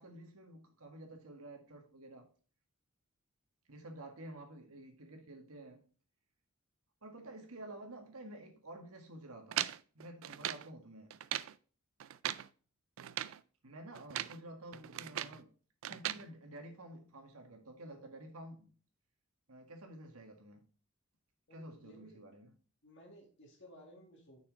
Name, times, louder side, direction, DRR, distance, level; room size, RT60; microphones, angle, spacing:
voice 1, 0.0-2.3 3.7-5.9 7.0-9.7 10.0-11.2 13.6-15.5 15.8-18.7 19.5-20.6 21.5-22.6, right 1 dB, 90° right, 1.8 m, -51 dB
sound 1, 9.5-10.7 11.1-11.6 12.0-12.5 13.0-13.4 13.9-14.4 14.7-15.4 15.8-16.2, right 12 dB, 65° right, 0.4 m, -39 dB
voice 2, 21.5-22.2 22.8-24.4, equal, 55° left, 2.2 m, -57 dB
6.4 x 6.1 x 3.9 m
head